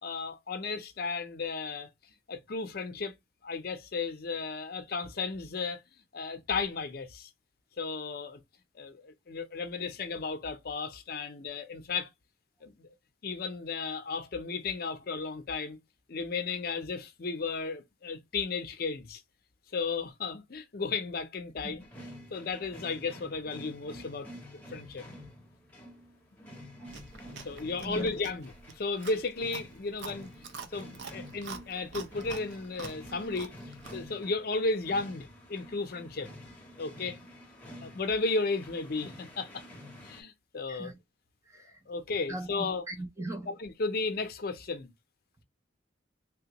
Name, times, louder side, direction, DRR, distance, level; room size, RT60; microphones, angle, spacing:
voice 1, 0.0-1.9 2.3-3.1 3.4-5.8 6.1-7.3 7.8-8.4 8.7-12.1 12.6-12.9 13.2-15.8 16.1-19.2 19.7-21.9 22.3-24.3 24.7-25.0 27.4-30.3 30.7-33.5 33.9-36.3 36.8-37.2 37.8-39.6 40.0-40.9 41.9-42.8 43.5-44.9, left 4 dB, 55° left, 0.5 m, -34 dB
sound 1, 21.8-40.2, equal, 10° left, 0.7 m, -49 dB
Chewing mastication, 26.9-34.1, right 5 dB, 70° right, 0.5 m, -46 dB
voice 2, 41.5-41.8 42.3-43.5, right 1 dB, 15° right, 0.4 m, -39 dB
3.4 x 2.2 x 2.8 m
head